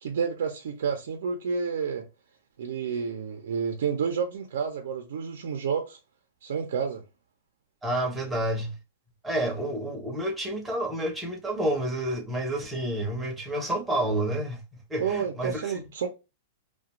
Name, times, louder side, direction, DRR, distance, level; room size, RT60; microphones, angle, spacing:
voice 1, 0.0-2.0 2.6-6.0 6.4-7.0 15.0-16.1, right 6 dB, 80° right, 0.5 m, -30 dB
voice 2, 7.8-8.8 9.2-14.6 14.9-15.8, right 1 dB, 5° right, 0.6 m, -29 dB
2.4 x 2.2 x 2.8 m
supercardioid pair, 160°, 0 cm